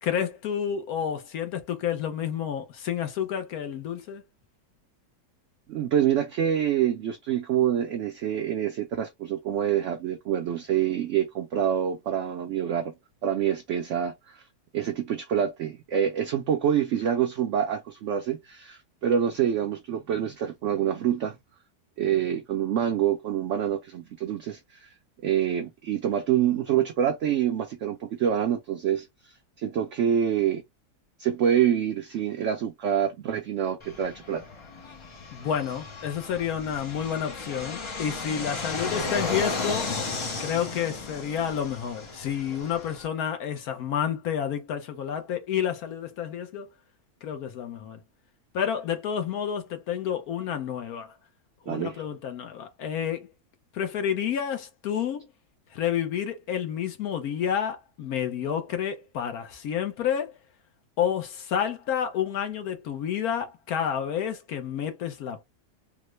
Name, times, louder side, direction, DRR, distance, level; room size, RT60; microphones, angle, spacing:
voice 1, 0.0-4.2 35.3-39.9 40.4-46.7 47.2-48.0 48.5-51.1 51.6-53.3 53.7-55.3 55.7-60.4 61.0-65.4, left 8 dB, 70° left, 1.2 m, -30 dB
voice 2, 5.7-12.9 13.2-14.4 14.7-21.4 22.0-24.9 25.2-29.1 29.6-30.6 31.2-34.4 51.7-52.0, right 9 dB, 65° right, 0.7 m, -26 dB
Fixed-wing aircraft airplane, 33.8-43.1, left 3 dB, 45° left, 0.4 m, -34 dB
3.6 x 2.1 x 3.0 m
omnidirectional pair, 1.7 m